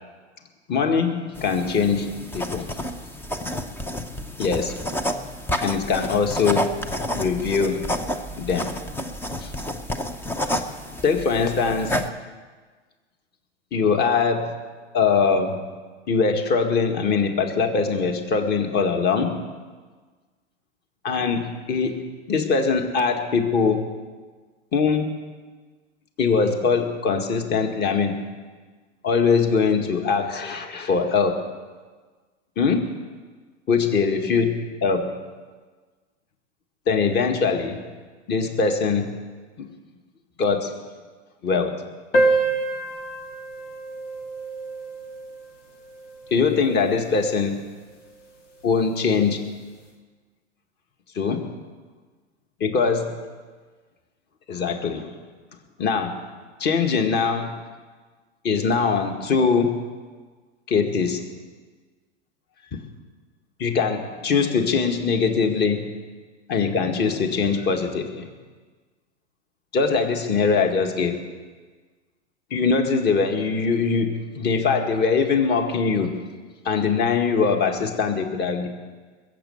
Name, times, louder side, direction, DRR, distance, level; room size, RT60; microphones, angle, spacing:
voice 1, 0.7-2.7 4.4-4.8 5.6-6.7 7.1-7.8 8.4-8.7 9.4-9.5 11.0-12.0 13.7-14.6 14.9-15.6 16.1-19.4 21.0-22.0 22.3-23.8 24.7-25.1 26.2-28.2 29.0-31.3 32.6-32.9 33.7-34.5 34.8-35.1 36.9-37.8 38.3-39.1 39.6-39.7 40.4-40.7 41.4-41.8 46.3-47.6 48.6-49.5 51.2-51.5 52.6-53.1 54.5-55.1 55.8-56.2 56.6-57.6 58.4-59.7 60.7-61.2 62.7-62.8 63.6-65.9 66.5-68.3 69.7-71.2 72.5-76.2 76.7-78.7, left 5 dB, 30° left, 5 dB, 1.9 m, -22 dB
sound 1, 1.3-12.1, left 1 dB, 5° left, 0.7 m, -30 dB
sound 2, 42.1-47.1, right 2 dB, 85° left, 2.1 m, -27 dB
21.0 x 7.8 x 8.0 m, 1.4 s
hypercardioid pair, 120°, 36 cm